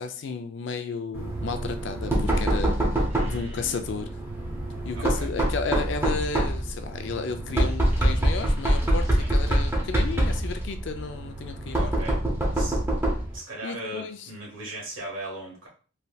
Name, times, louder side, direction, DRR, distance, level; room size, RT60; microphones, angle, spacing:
voice 1, 0.0-4.1 4.8-11.9 13.6-14.3, left 4 dB, 55° left, 7 dB, 0.3 m, -33 dB
Knock, 1.1-13.4, right 1 dB, 10° right, 0.6 m, -25 dB
voice 2, 3.1-3.9 4.9-5.3 9.2-9.3 11.8-12.2 12.5-12.8 13.3-15.7, right 1 dB, 70° right, -3 dB, 1.4 m, -38 dB
3.2 x 2.7 x 2.3 m, 0.39 s
head